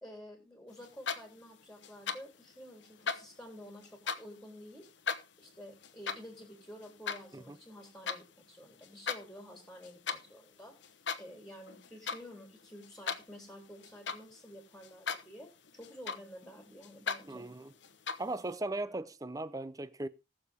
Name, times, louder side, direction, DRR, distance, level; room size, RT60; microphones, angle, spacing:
voice 1, 0.0-4.9 5.4-10.8 11.2-17.5, equal, 5° left, 3.2 m, -50 dB
sound 1, 0.8-1.5 1.8-2.4 2.8-4.4 4.8-8.2 8.7-9.2 9.5-10.3 10.8-11.4 11.7-12.3 12.6-14.4 14.8-15.4 15.6-16.5 16.8-17.2 17.8-18.4, left 6 dB, 65° left, 0.9 m, -38 dB
voice 2, 17.3-17.7 18.2-20.1, right 2 dB, 15° right, 0.5 m, -38 dB
19.5 x 6.8 x 3.5 m
head